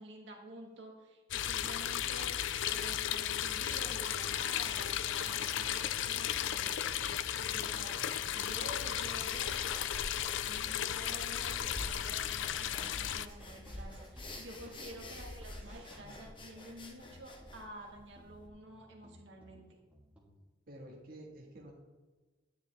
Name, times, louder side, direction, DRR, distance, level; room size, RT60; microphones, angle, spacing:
voice 1, 0.0-2.3 2.7-6.8 7.3-8.0 8.3-9.6 10.4-19.6, right 1 dB, 65° right, -1 dB, 1.6 m, -50 dB
sound 1, 1.3-13.3, left 10 dB, 70° left, 0.4 m, -35 dB
sound 2, 1.3-20.3, equal, 5° right, 1.5 m, -55 dB
sound 3, 9.2-18.5, left 1 dB, 25° left, 1.0 m, -48 dB
voice 2, 20.7-21.7, right 1 dB, 45° right, -2 dB, 1.5 m, -50 dB
10.0 x 9.7 x 3.4 m, 1.3 s
head